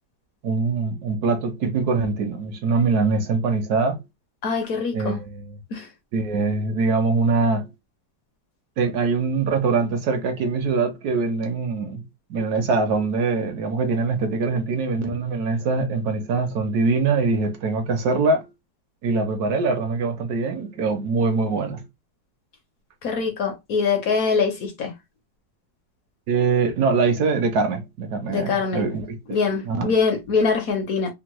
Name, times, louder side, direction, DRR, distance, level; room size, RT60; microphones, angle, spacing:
voice 1, 0.4-4.0 4.9-5.6 6.1-7.7 8.8-12.0 12.3-18.5 19.0-21.8 26.3-29.4 29.7-29.9, right 4 dB, 70° right, 1.0 m, -23 dB
voice 2, 4.4-5.2 5.7-5.9 23.0-24.9 28.3-28.8 29.3-31.1, left 5 dB, 60° left, 1.0 m, -23 dB
3.5 x 2.0 x 2.9 m
omnidirectional pair, 1.9 m